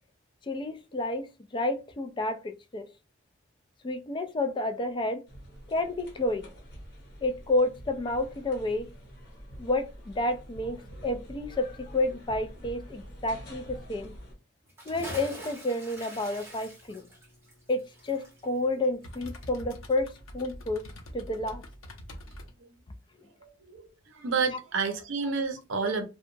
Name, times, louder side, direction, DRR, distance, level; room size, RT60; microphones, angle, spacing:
voice 1, 0.5-1.3 1.5-2.9 3.8-5.2 5.7-6.5 7.2-8.9 9.6-10.8 11.0-14.1 14.9-17.0 17.7-20.8 21.1-21.6, left 2 dB, 25° left, 0.3 m, -30 dB
sound 1, 5.3-14.3, equal, 55° left, 1.0 m, -46 dB
Bathtub (filling or washing) / Splash splatter, 14.7-19.6 19.9-20.0, equal, 15° right, 1.0 m, -44 dB
sound 2, 16.1-22.5, equal, 90° left, 0.7 m, -47 dB
voice 2, 23.6-26.1, right 5 dB, 70° right, 0.6 m, -30 dB
2.7 x 2.2 x 2.6 m
head